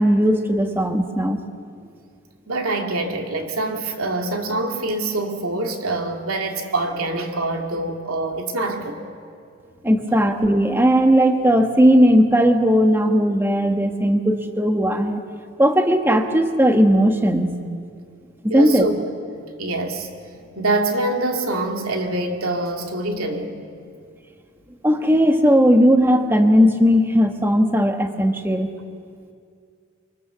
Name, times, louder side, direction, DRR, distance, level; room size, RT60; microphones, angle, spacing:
voice 1, 0.0-1.4 9.8-15.2 15.6-17.5 18.5-18.9 24.8-28.7, equal, 10° right, 5 dB, 1.2 m, -17 dB
voice 2, 2.5-9.0 18.5-18.9 19.3-20.1 20.6-23.6, right 2 dB, 75° right, 3 dB, 2.6 m, -25 dB
24.0 x 24.0 x 6.9 m, 2.3 s
head